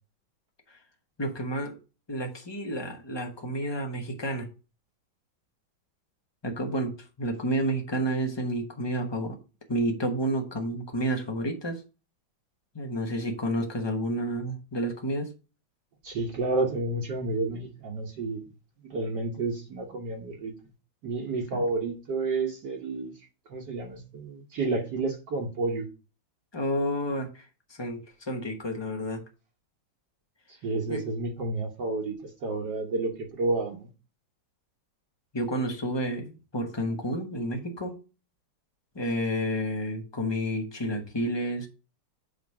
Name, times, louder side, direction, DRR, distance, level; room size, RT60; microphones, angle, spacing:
voice 1, 1.2-1.7 2.1-4.5 6.4-6.9 7.2-9.3 9.7-11.8 12.7-15.3 21.5-21.6 26.5-27.4 27.8-28.0 28.3-29.2 30.9-31.0 35.3-38.0 38.9-41.7, equal, 20° left, 0.8 m, -30 dB
voice 2, 16.0-18.4 18.9-20.5 21.0-23.1 23.5-25.9 30.6-32.1 32.4-33.9, right 3 dB, 60° right, 1.6 m, -30 dB
8.7 x 3.2 x 4.7 m
omnidirectional pair, 2.2 m